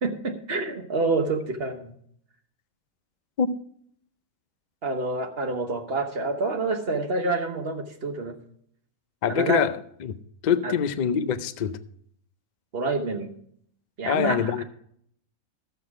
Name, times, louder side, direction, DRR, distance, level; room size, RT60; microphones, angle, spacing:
voice 1, 0.0-1.9 4.8-8.3 9.3-9.7 10.6-10.7 12.7-13.3 14.0-14.6, right 3 dB, 45° right, 6 dB, 1.2 m, -27 dB
voice 2, 9.2-9.7 10.0-10.1 10.4-11.8 14.0-14.6, left 7 dB, 60° left, 12 dB, 0.4 m, -24 dB
12.5 x 8.0 x 4.8 m, 0.66 s
omnidirectional pair, 1.5 m